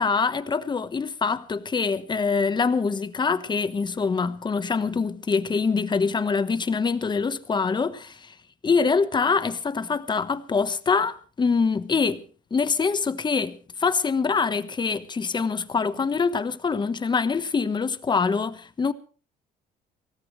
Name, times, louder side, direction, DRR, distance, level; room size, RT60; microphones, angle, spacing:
voice 1, 0.0-8.3 8.6-12.3 12.5-18.9, left 5 dB, 25° left, 1.3 m, -24 dB
24.0 x 18.0 x 3.3 m
cardioid pair, 110°, 17 cm